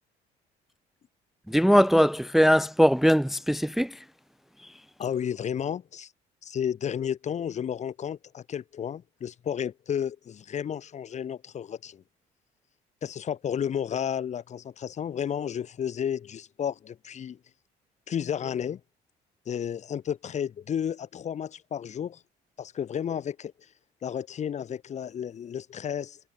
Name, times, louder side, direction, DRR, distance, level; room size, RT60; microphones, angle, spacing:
voice 1, 1.5-4.0, equal, ahead, 0.6 m, -21 dB
voice 2, 5.0-6.1 6.4-12.0 13.0-17.4 18.1-18.8 19.5-22.2 22.6-23.5 24.0-26.2, left 8 dB, 45° left, 1.2 m, -32 dB
cardioid pair, 110°, 17 cm